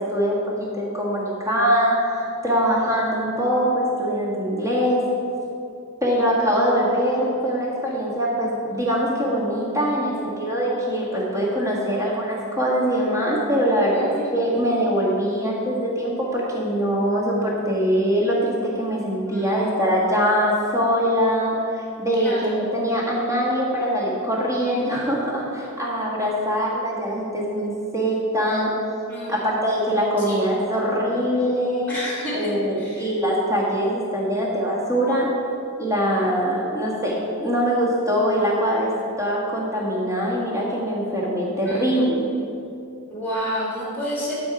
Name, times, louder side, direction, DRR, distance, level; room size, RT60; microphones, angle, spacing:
voice 1, 0.0-5.1 6.0-21.6 22.0-28.7 29.3-31.9 32.3-35.3 35.8-38.9 39.2-42.2, equal, 15° right, -5 dB, 1.7 m, -23 dB
voice 2, 13.9-14.3 19.2-20.1 22.2-22.5 29.1-29.8 30.3-30.4 31.9-32.5 32.8-33.1 41.6-42.3 43.1-44.3, equal, 10° left, -5 dB, 2.2 m, -31 dB
11.5 x 4.5 x 5.0 m, 2.6 s
head